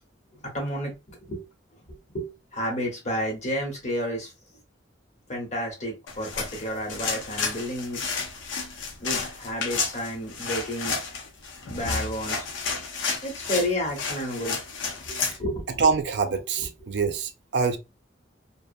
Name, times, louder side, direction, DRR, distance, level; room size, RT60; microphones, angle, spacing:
voice 1, 0.4-1.0 1.3-1.4 2.1-4.3 5.3-8.0 9.0-10.9 11.7-12.9 13.2-14.6 15.0-16.0 16.6-16.7, equal, 40° left, 1.0 m, -31 dB
sound 1, 6.1-15.4, left 4 dB, 90° left, 0.6 m, -31 dB
voice 2, 15.8-17.8, right 5 dB, 65° right, 0.4 m, -25 dB
2.4 x 2.0 x 2.5 m
head